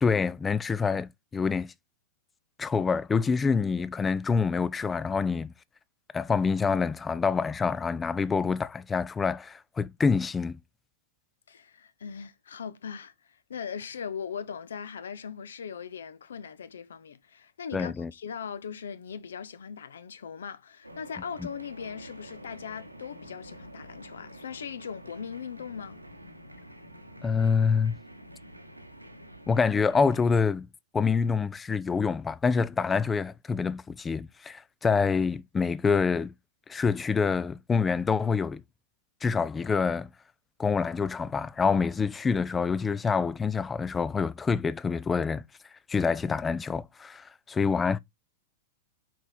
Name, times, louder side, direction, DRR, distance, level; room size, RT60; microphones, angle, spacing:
voice 1, 0.0-1.7 2.6-5.5 6.1-10.6 17.7-18.1 27.2-27.9 29.5-30.7 30.9-36.3 36.7-38.6 39.2-40.1 40.6-45.4 45.9-48.0, left 5 dB, 15° left, 0.4 m, -26 dB
voice 2, 11.5-26.0, left 7 dB, 65° left, 0.7 m, -39 dB
sound 1, 20.8-30.3, equal, 90° right, 1.0 m, -48 dB
6.0 x 4.6 x 4.1 m
figure-of-eight pair, 95°, 0 cm